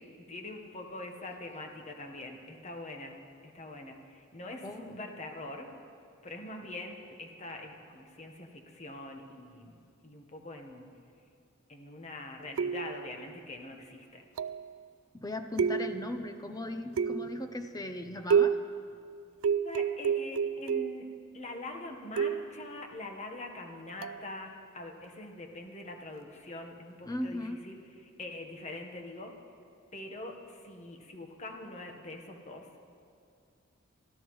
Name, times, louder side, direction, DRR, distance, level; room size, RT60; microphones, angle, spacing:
voice 1, 0.3-3.2 3.4-5.7 6.2-10.9 11.7-14.2 19.6-21.1 21.3-27.8 28.2-29.3 29.9-32.8, left 2 dB, 35° left, 3 dB, 1.2 m, -44 dB
voice 2, 4.6-5.1 15.1-18.6 27.0-27.6, left 1 dB, 15° left, 7 dB, 0.6 m, -38 dB
sound 1, 12.6-13.1 14.4-14.7 15.6-16.2 17.0-17.5 18.3-18.8 19.4-21.1 22.2-22.6 24.0-24.3, right 7 dB, 70° right, 0.3 m, -29 dB
24.0 x 14.0 x 3.2 m, 2.4 s
head